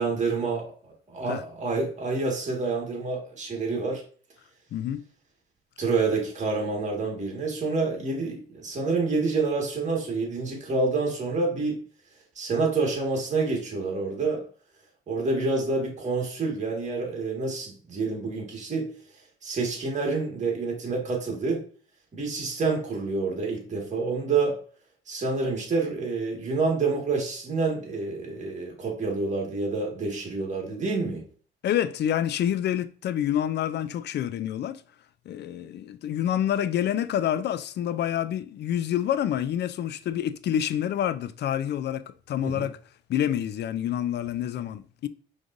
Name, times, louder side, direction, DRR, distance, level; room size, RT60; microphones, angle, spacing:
voice 1, 0.0-4.0 5.8-11.8 12.4-14.4 15.1-18.9 19.4-21.6 22.1-24.6 25.1-31.2 42.4-42.7, right 3 dB, 35° right, 1.8 m, -28 dB
voice 2, 4.7-5.0 31.6-34.8 35.3-42.8 43.1-45.1, left 10 dB, 60° left, 0.4 m, -27 dB
5.0 x 3.2 x 2.6 m
cardioid pair, 90°, 20 cm